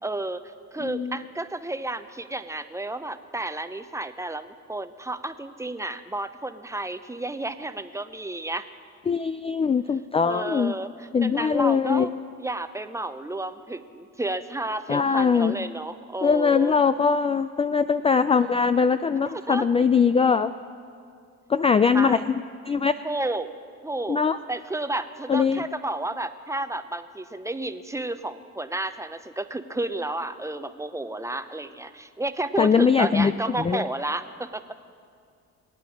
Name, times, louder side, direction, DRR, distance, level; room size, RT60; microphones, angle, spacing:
voice 1, 0.0-8.7 10.2-12.1 12.4-16.7 19.3-19.7 21.9-22.2 23.0-23.5 23.8-24.2 24.5-34.6, right 2 dB, 10° right, 10 dB, 0.7 m, -31 dB
voice 2, 0.8-1.2 9.1-10.7 11.1-12.1 14.9-15.6 16.2-20.5 21.5-22.3 22.6-22.9 24.1-24.4 25.3-25.6 32.6-33.8, left 6 dB, 20° left, 12 dB, 0.3 m, -21 dB
23.0 x 9.1 x 6.3 m, 2.3 s
cardioid pair, 90°, 30 cm